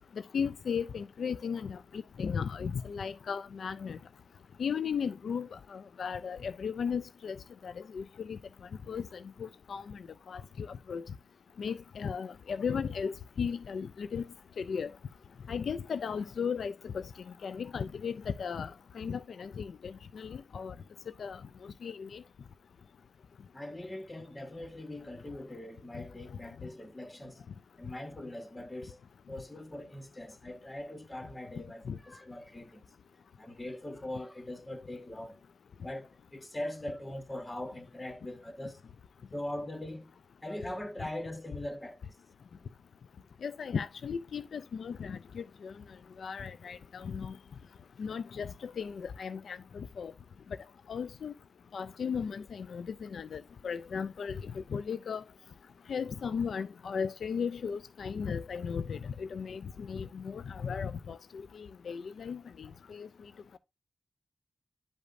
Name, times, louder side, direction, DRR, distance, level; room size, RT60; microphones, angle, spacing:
voice 1, 0.3-4.0 4.6-8.4 8.9-11.0 11.6-14.2 14.6-14.9 15.5-20.7 21.2-22.2 25.9-26.0 31.9-32.0 43.4-45.7 46.2-47.4 48.0-50.1 50.9-51.3 51.7-55.2 55.9-63.1, left 6 dB, 85° left, 0.3 m, -36 dB
voice 2, 23.5-27.5 27.8-32.8 33.4-35.4 35.8-38.8 39.3-40.1 40.4-42.2, left 1 dB, 25° left, 1.4 m, -41 dB
10.5 x 5.1 x 2.6 m
cardioid pair, 65°, 0 cm